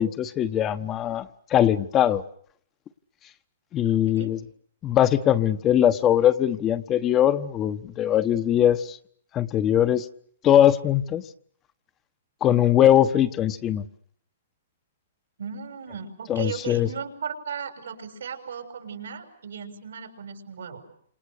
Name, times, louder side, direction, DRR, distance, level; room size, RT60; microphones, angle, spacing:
voice 1, 0.0-2.2 3.7-4.4 4.8-9.0 9.3-10.0 10.4-11.2 12.4-13.8 16.3-16.9, left 11 dB, 20° left, 11 dB, 1.2 m, -21 dB
voice 2, 3.8-4.3 15.4-20.8, right 6 dB, 85° right, 6 dB, 6.7 m, -36 dB
29.0 x 28.0 x 6.7 m, 0.63 s
hypercardioid pair, 155°, 0 cm